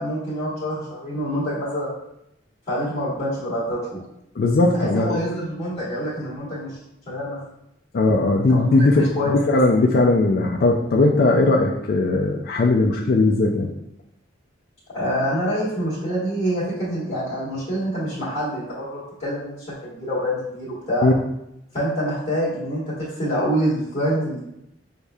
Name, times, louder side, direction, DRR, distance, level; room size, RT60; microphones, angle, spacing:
voice 1, 0.0-1.9 2.7-4.0 4.7-6.8 7.1-7.4 8.5-9.3 14.9-21.1 21.7-24.4, equal, 35° left, -9 dB, 1.5 m, -26 dB
voice 2, 4.4-5.2 7.9-9.1 9.5-13.7 21.0-21.1, left 2 dB, 50° left, 0 dB, 0.4 m, -18 dB
6.5 x 2.6 x 2.3 m, 0.82 s
head